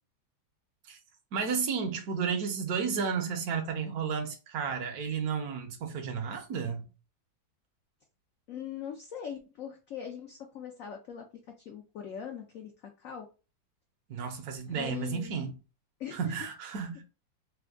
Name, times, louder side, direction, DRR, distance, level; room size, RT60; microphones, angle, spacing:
voice 1, 1.3-6.8 14.1-15.5 16.1-17.0, right 6 dB, 65° right, 1.0 m, -32 dB
voice 2, 8.5-11.2 11.7-13.3 14.8-15.5 16.0-16.3, left 8 dB, 80° left, 0.7 m, -41 dB
3.4 x 2.2 x 3.4 m
omnidirectional pair, 2.1 m